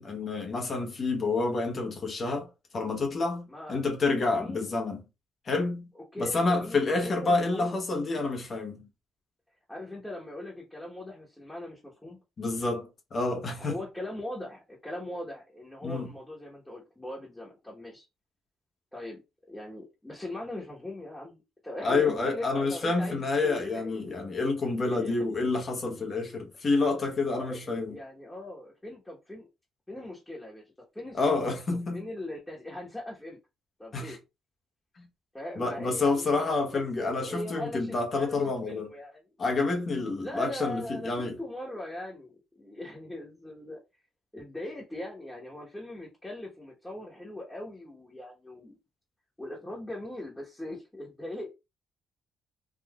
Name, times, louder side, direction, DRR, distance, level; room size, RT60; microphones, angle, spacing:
voice 1, 0.0-2.5 2.7-5.0 5.4-5.9 6.2-8.9 12.4-13.8 15.8-16.1 21.8-28.0 31.1-32.1 33.9-34.2 35.6-38.9 39.4-41.4, left 3 dB, 45° left, 0.9 m, -28 dB
voice 2, 3.5-3.8 4.2-4.7 5.9-7.8 9.7-12.2 13.6-18.0 18.9-19.2 19.5-24.0 24.8-25.4 25.9-26.0 27.3-29.5 29.9-31.5 31.9-33.4 33.8-34.2 35.3-39.2 40.2-43.8 44.3-48.8 49.4-51.5, left 1 dB, 10° left, 1.1 m, -40 dB
3.5 x 2.5 x 2.3 m
cardioid pair, 90°, 0 cm